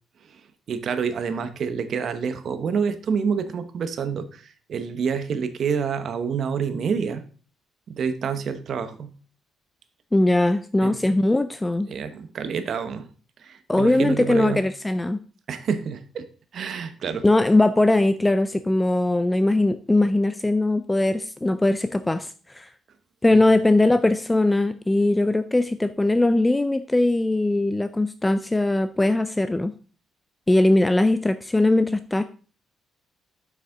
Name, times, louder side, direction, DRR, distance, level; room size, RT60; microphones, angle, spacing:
voice 1, 0.7-7.2 7.9-9.1 10.8-11.0 11.9-13.1 13.4-14.6 15.5-16.3 16.5-17.2 23.3-23.5, right 6 dB, 60° right, 10 dB, 0.9 m, -27 dB
voice 2, 10.1-11.9 13.7-15.2 17.2-22.7 23.2-29.7 30.5-32.2, left 2 dB, 15° left, 11 dB, 0.4 m, -20 dB
7.1 x 6.1 x 3.8 m, 0.39 s
cardioid pair, 90°, 0 cm